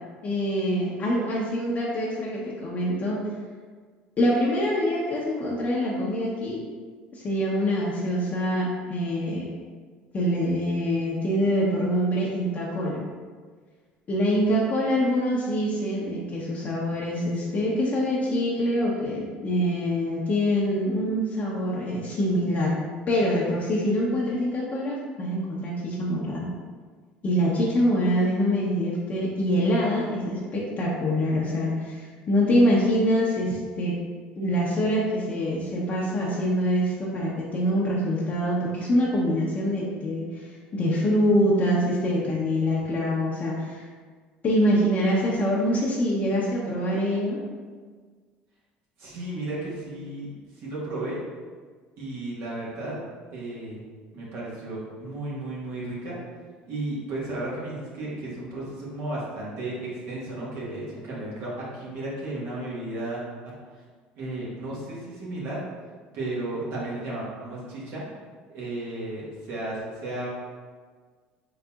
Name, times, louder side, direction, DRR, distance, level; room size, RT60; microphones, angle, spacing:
voice 1, 0.2-3.2 4.2-6.6 7.1-9.5 10.1-13.0 14.1-22.7 23.1-26.5 27.2-33.9 34.4-43.9 44.4-47.4, equal, 40° left, -5 dB, 0.7 m, -25 dB
voice 2, 49.0-51.2 52.0-53.0 53.3-53.8 54.1-56.2 56.7-63.8 64.1-65.6 66.1-68.0 68.5-70.3, right 2 dB, 65° right, -6 dB, 1.4 m, -34 dB
4.0 x 3.9 x 2.4 m, 1.6 s
supercardioid pair, 90°, 4 cm